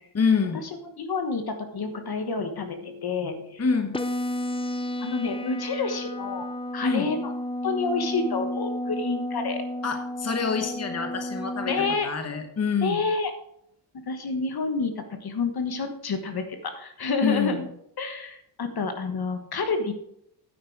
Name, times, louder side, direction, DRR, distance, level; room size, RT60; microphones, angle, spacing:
voice 1, 0.1-0.6 3.6-3.9 6.8-7.1 9.8-11.7 12.0-13.0 17.2-17.7, left 5 dB, 35° left, 5 dB, 1.2 m, -26 dB
voice 2, 1.0-3.6 5.0-6.5 6.7-7.3 7.6-9.7 11.6-12.1 12.8-13.3 14.1-17.6 18.0-19.9, left 4 dB, 55° left, 7 dB, 1.3 m, -29 dB
sound 1, 3.9-11.9, left 1 dB, 15° left, 0.4 m, -32 dB
9.5 x 9.4 x 4.6 m, 0.74 s
wide cardioid pair, 140°, 45 cm